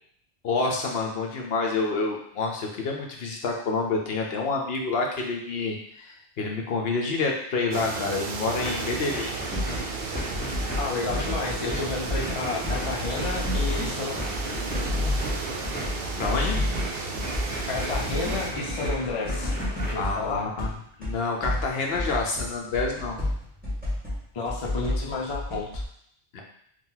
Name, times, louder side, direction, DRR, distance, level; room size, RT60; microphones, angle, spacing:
voice 1, 0.4-9.4 15.6-15.7 16.2-16.6 19.9-20.7 21.0-23.2 26.3-26.4, left 3 dB, 65° left, 0 dB, 0.8 m, -28 dB
sound 1, 7.7-18.5, right 4 dB, 60° right, 0.8 m, -34 dB
sound 2, 8.6-19.9, right 1 dB, 10° left, 0.9 m, -37 dB
sound 3, 9.5-12.4 12.6-20.8 21.0-25.8, left 1 dB, 10° right, 1.6 m, -30 dB
voice 2, 10.8-14.2 17.7-19.5 19.9-20.5 24.3-25.8, left 3 dB, 35° left, -2 dB, 0.6 m, -31 dB
4.4 x 2.3 x 3.8 m, 0.68 s
omnidirectional pair, 1.2 m